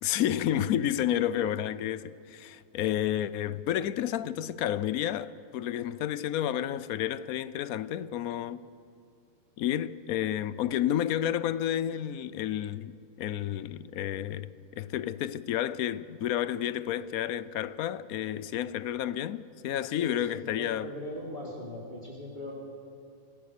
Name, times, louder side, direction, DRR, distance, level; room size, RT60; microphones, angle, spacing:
voice 1, 0.0-8.6 9.6-20.9, left 11 dB, 75° left, 1.1 m, -31 dB
voice 2, 19.9-22.5, left 1 dB, 40° left, 2.5 m, -40 dB
26.5 x 15.5 x 6.7 m
omnidirectional pair, 1.5 m